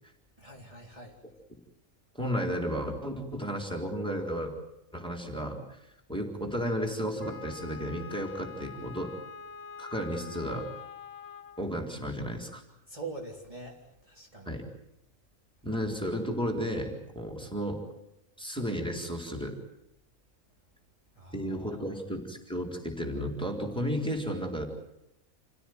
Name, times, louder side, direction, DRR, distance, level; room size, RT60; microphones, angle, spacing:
voice 1, 0.4-1.2 12.9-13.8 14.1-14.6 21.2-21.8, right 3 dB, 25° right, -2 dB, 3.6 m, -44 dB
voice 2, 2.1-4.5 4.9-5.8 6.1-9.1 9.8-10.7 11.6-12.6 14.5-14.6 15.6-17.8 18.4-19.6 21.3-24.7, equal, 5° left, 2 dB, 4.1 m, -33 dB
Wind instrument woodwind instrument, 7.2-11.7, left 6 dB, 60° left, 1.8 m, -45 dB
28.5 x 17.0 x 9.4 m, 0.84 s
omnidirectional pair, 1.4 m